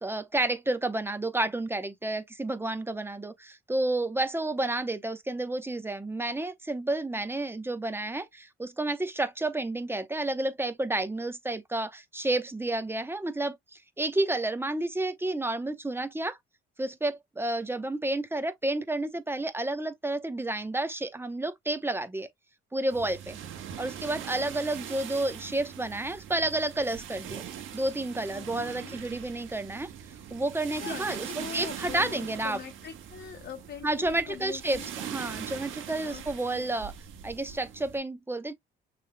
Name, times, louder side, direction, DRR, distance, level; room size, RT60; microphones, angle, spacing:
voice 1, 0.0-16.4 16.8-22.3 22.7-23.4 23.8-27.4 27.7-29.9 30.3-32.6 33.8-36.9 37.2-38.5, right 2 dB, 10° right, 0.9 m, -30 dB
sound 1, 22.9-38.0, right 9 dB, 80° right, 1.4 m, -42 dB
voice 2, 28.3-29.0 30.7-34.9 36.0-36.7, left 8 dB, 55° left, 0.9 m, -43 dB
6.4 x 3.4 x 2.2 m
cardioid pair, 90°, 20 cm